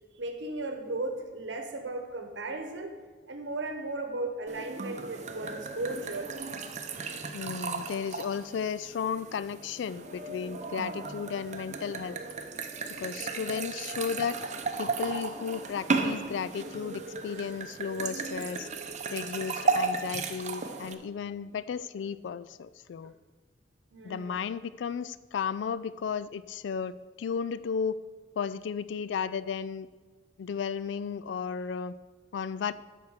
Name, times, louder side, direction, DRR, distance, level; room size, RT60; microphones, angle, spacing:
voice 1, 0.2-3.0 3.3-6.5 23.9-24.4, right 2 dB, 75° right, 5 dB, 1.0 m, -36 dB
sound 1, 4.5-20.9, right 4 dB, 40° right, 0.7 m, -35 dB
voice 2, 7.3-12.2 13.0-14.4 14.8-18.7 19.1-23.1 24.0-28.0 28.4-29.9 30.4-31.9 32.3-32.7, left 6 dB, 75° left, 16 dB, 0.3 m, -34 dB
12.5 x 4.6 x 7.2 m, 1.4 s
head